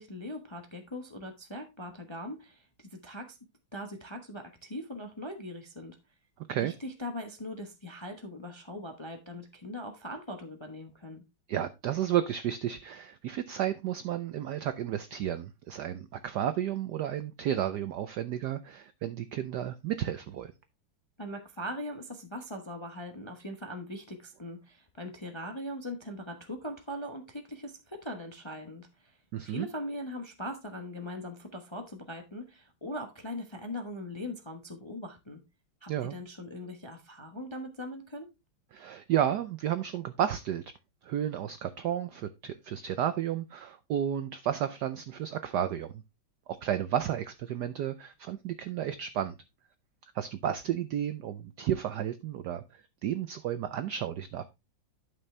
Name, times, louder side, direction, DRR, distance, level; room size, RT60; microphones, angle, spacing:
voice 1, 0.0-3.4 3.7-6.0 6.6-11.2 21.2-29.2 29.4-35.4 35.8-38.3, left 1 dB, 25° left, 0.6 m, -40 dB
voice 2, 11.5-20.5 29.3-29.7 35.9-36.1 38.7-40.7 41.0-46.0 46.5-49.3 50.1-54.4, right 10 dB, 75° right, 0.9 m, -32 dB
11.0 x 5.9 x 3.2 m
omnidirectional pair, 2.4 m